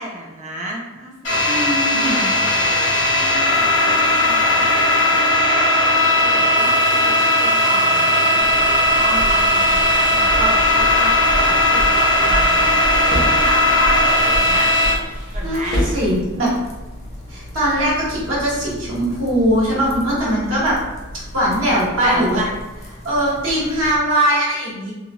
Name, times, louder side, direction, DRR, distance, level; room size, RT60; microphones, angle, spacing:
voice 1, 0.0-2.1 2.4-2.6 3.1-5.5 5.8-14.7 15.3-15.8 22.0-22.5 22.9-23.0, right 1 dB, 35° right, -1 dB, 0.4 m, -31 dB
sound 1, 1.2-14.9, left 1 dB, 60° left, 0.8 m, -17 dB
voice 2, 1.4-2.3 15.4-16.5 17.3-20.8 21.1-22.4 23.0-24.9, right 1 dB, 80° right, -7 dB, 1.0 m, -20 dB
sound 2, 8.4-24.0, equal, 30° left, 0.4 m, -32 dB
sound 3, 12.3-13.5 14.3-16.4, equal, 50° right, 0.8 m, -28 dB
2.5 x 2.0 x 2.9 m, 1.1 s
head